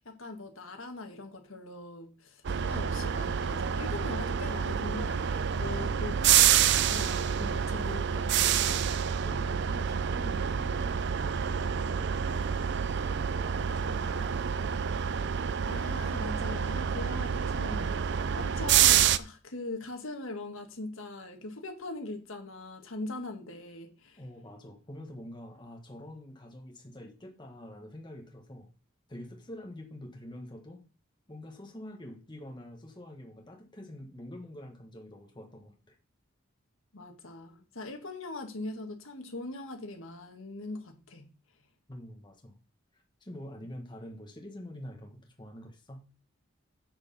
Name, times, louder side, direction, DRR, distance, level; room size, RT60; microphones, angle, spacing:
voice 1, 0.1-8.8 15.7-24.2 36.9-41.3, left 2 dB, 70° left, 1.7 m, -41 dB
sound 1, 2.4-19.2, right 8 dB, 55° right, 0.5 m, -28 dB
voice 2, 5.6-6.4 9.2-12.7 13.3-14.7 24.2-28.7 29.1-30.8 31.3-36.0 41.9-42.6 42.9-46.1, left 1 dB, 20° left, 1.4 m, -46 dB
7.9 x 6.6 x 5.4 m
head